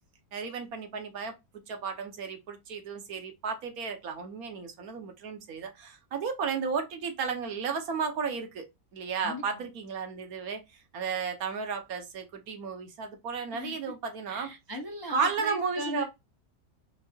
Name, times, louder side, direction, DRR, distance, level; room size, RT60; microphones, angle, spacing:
voice 1, 0.3-1.3 1.7-8.7 8.9-14.5 15.1-16.1, right 5 dB, 65° right, 1.3 m, -33 dB
voice 2, 9.2-9.7 13.5-13.8 14.3-16.0, left 1 dB, 25° left, 0.4 m, -38 dB
4.7 x 3.3 x 2.7 m
omnidirectional pair, 1.7 m